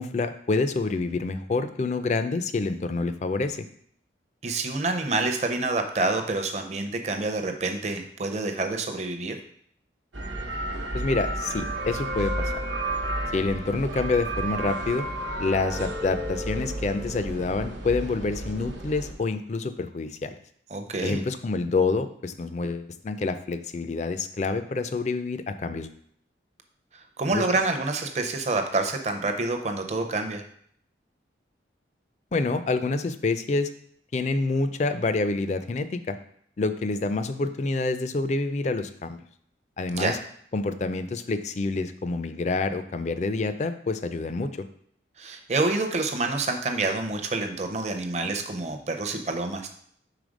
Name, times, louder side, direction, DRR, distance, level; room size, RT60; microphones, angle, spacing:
voice 1, 0.0-3.7 10.9-12.5 13.3-15.1 15.4-20.3 21.0-25.9 27.3-27.4 32.3-33.7 34.1-36.2 36.6-39.2 39.8-40.2 40.5-44.7, left 3 dB, 40° left, 10 dB, 0.4 m, -27 dB
voice 2, 4.4-9.4 20.7-21.2 26.9-30.4 39.9-40.2 45.2-49.7, right 3 dB, 35° right, 5 dB, 0.6 m, -27 dB
sound 1, 10.1-19.1, right 1 dB, 80° right, 0.9 m, -32 dB
4.9 x 3.8 x 5.1 m, 0.64 s
head